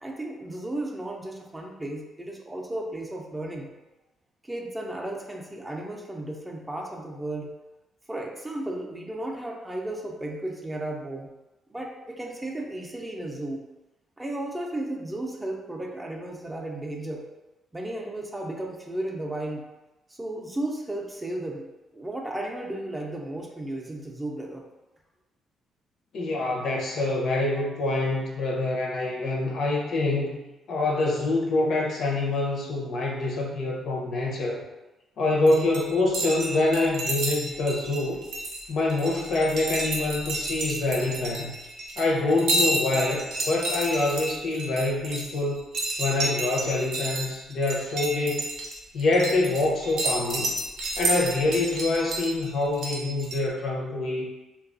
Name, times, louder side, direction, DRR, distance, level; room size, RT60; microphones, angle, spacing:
voice 1, 0.0-3.7 4.4-7.5 8.1-11.3 11.7-13.6 14.2-17.3 17.7-19.7 20.2-21.7 21.9-24.6, right 1 dB, 15° right, 0 dB, 0.4 m, -34 dB
voice 2, 26.1-30.4 30.7-34.6 35.2-38.2 38.7-41.6 42.0-45.6 46.0-48.5 48.9-50.5 51.0-54.3, left 2 dB, 65° left, -2 dB, 0.6 m, -25 dB
sound 1, 35.5-53.4, right 2 dB, 75° right, 0.5 m, -31 dB
2.7 x 2.3 x 2.5 m, 1.0 s
cardioid pair, 90°, 0 cm